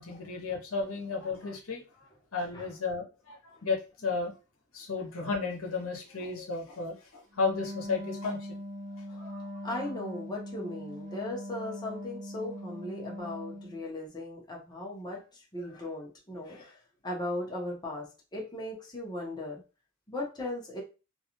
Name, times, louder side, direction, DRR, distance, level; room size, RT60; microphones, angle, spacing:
voice 1, 0.0-1.8 2.3-4.3 4.7-8.4 9.2-9.5 15.6-15.7 16.5-16.6, left 4 dB, 85° left, 0 dB, 0.9 m, -33 dB
Wind instrument woodwind instrument, 7.3-13.8, equal, 40° right, 0.5 m, -41 dB
voice 2, 9.6-15.2 15.5-16.8 17.0-18.1 18.3-19.6 20.1-20.8, left 1 dB, 20° left, -3 dB, 0.8 m, -37 dB
2.5 x 2.3 x 2.8 m, 0.31 s
head